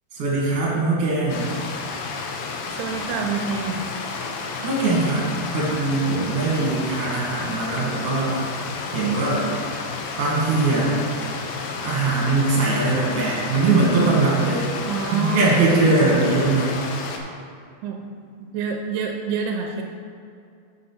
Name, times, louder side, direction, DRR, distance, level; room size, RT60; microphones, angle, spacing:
voice 1, 0.1-1.5 4.6-8.4 8.9-9.5 10.2-10.9 11.8-14.6 15.1-16.7, right 3 dB, 50° right, -5 dB, 2.1 m, -21 dB
Stream, 1.3-17.2, left 4 dB, 80° left, 2.2 m, -31 dB
voice 2, 2.7-3.8 14.8-15.6 15.9-16.0 17.8-18.1 18.5-19.8, right 5 dB, 85° right, 2 dB, 2.6 m, -26 dB
6.6 x 5.6 x 5.7 m, 2.4 s
omnidirectional pair, 4.6 m